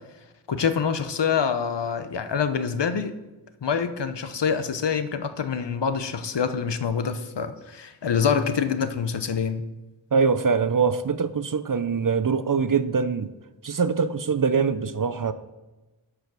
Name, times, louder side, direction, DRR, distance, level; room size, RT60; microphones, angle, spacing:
voice 1, 0.5-3.1 3.6-9.6, left 6 dB, 60° left, 0.8 m, -26 dB
voice 2, 10.1-13.3 13.6-15.3, right 5 dB, 45° right, 0.6 m, -23 dB
13.0 x 5.0 x 6.1 m
wide cardioid pair, 70°, 47 cm